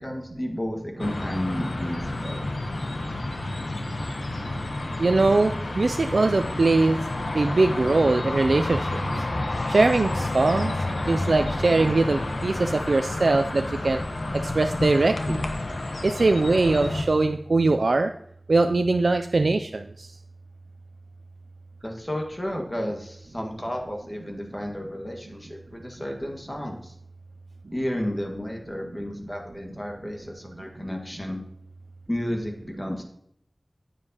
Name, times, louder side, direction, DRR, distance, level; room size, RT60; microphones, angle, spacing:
voice 1, 0.0-2.4 21.8-26.9 27.7-31.4 32.1-33.0, equal, 25° left, 1 dB, 1.7 m, -32 dB
sound 1, 1.0-17.0, left 2 dB, 85° left, 0.9 m, -30 dB
voice 2, 5.0-7.0 7.3-9.2 9.7-10.7 11.1-14.0 14.3-15.4 16.0-18.1 18.5-20.1, right 3 dB, 85° right, 7 dB, 0.3 m, -22 dB
9.7 x 8.4 x 2.9 m, 0.71 s
wide cardioid pair, 55°, 0 cm